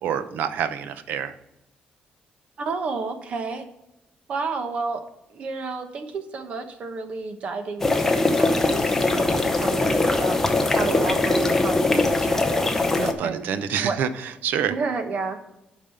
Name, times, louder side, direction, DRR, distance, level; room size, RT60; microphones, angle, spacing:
voice 1, 0.0-1.3 13.0-14.7, right 8 dB, 85° right, 12 dB, 0.7 m, -27 dB
voice 2, 2.6-3.6 4.3-5.0 5.3-10.4 10.7-12.9 13.2-13.5 13.8-14.0 14.7-15.4, right 4 dB, 45° right, 7 dB, 1.0 m, -31 dB
sound 1, 7.8-13.1, left 2 dB, 10° left, 0.7 m, -21 dB
8.6 x 5.3 x 5.6 m, 0.89 s
cardioid pair, 175°, 3 cm